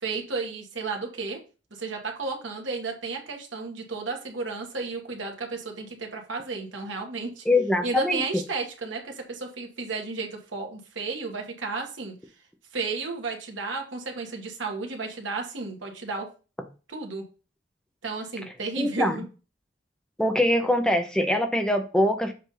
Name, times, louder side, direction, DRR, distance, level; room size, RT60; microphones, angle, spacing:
voice 1, 0.0-1.4 1.8-7.5 7.8-12.1 12.7-16.3 16.9-17.2 18.0-19.2, right 3 dB, 85° right, 2 dB, 1.6 m, -33 dB
voice 2, 7.5-8.2 18.8-19.2 20.2-22.3, left 1 dB, 5° left, 5 dB, 0.6 m, -23 dB
7.4 x 2.7 x 5.5 m, 0.34 s
head